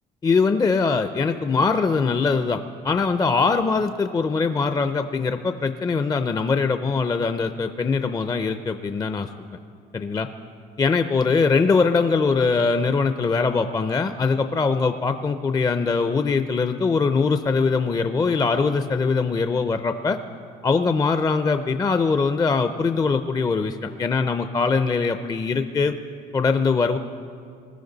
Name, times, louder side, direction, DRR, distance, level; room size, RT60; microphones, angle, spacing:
voice 1, 0.2-9.6 9.9-10.3 10.8-20.2 20.6-25.9 26.3-27.0, left 4 dB, 20° left, 8 dB, 0.5 m, -22 dB
20.0 x 13.5 x 4.0 m, 2.3 s
cardioid pair, 110°, 17 cm